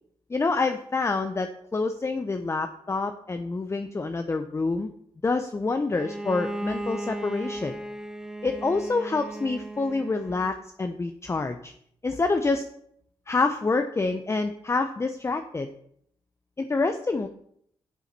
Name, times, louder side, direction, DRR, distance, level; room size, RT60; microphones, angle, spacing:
voice 1, 0.3-4.9 5.2-7.8 8.4-11.7 12.0-12.7 13.3-15.7 16.6-17.3, left 3 dB, 25° left, 7 dB, 0.7 m, -27 dB
Bowed string instrument, 5.9-10.6, right 1 dB, 5° right, 1.2 m, -36 dB
8.3 x 7.0 x 5.9 m, 0.68 s
cardioid pair, 75°, 11 cm